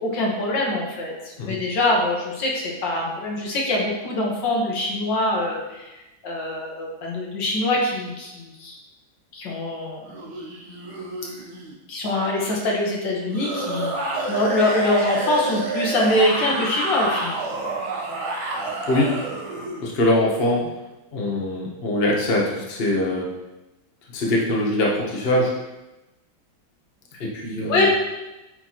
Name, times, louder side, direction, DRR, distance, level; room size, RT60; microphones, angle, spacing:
voice 1, 0.0-6.0 6.2-8.7 9.3-10.1 11.9-17.4 27.7-27.9, left 1 dB, 65° left, -2 dB, 1.9 m, -24 dB
sound 1, 10.0-11.7 13.3-19.8, right 3 dB, 80° right, 1.8 m, -29 dB
voice 2, 19.8-20.7 21.1-23.3 24.1-25.5 27.2-27.8, left 1 dB, 40° left, -2 dB, 0.9 m, -22 dB
8.9 x 4.2 x 3.0 m, 1.0 s
omnidirectional pair, 2.2 m